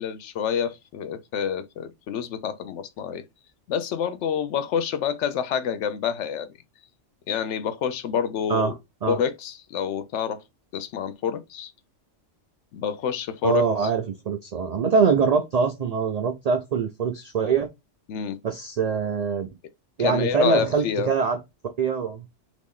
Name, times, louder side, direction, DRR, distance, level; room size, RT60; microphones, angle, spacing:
voice 1, 0.0-3.2 3.7-6.5 7.3-8.8 9.1-10.4 10.7-11.7 12.7-13.7 18.1-18.4 20.0-21.1, left 8 dB, 75° left, 0.9 m, -27 dB
voice 2, 13.4-17.7 18.4-19.5 20.0-21.4 21.8-22.3, right 5 dB, 80° right, 0.3 m, -23 dB
3.0 x 2.4 x 3.5 m
omnidirectional pair, 1.2 m